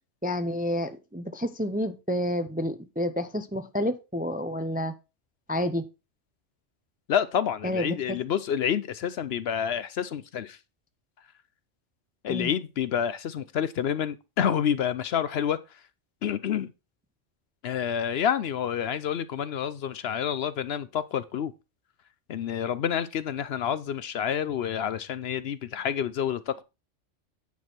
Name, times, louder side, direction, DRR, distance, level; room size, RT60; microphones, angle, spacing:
voice 1, 0.2-4.9 5.5-5.8 7.6-8.2 12.3-12.5, equal, 10° right, 0.4 m, -29 dB
voice 2, 7.1-10.6 12.2-15.6 16.2-16.7 17.6-21.5 22.3-26.6, left 8 dB, 65° left, 0.8 m, -28 dB
9.4 x 6.2 x 4.4 m
omnidirectional pair, 1.2 m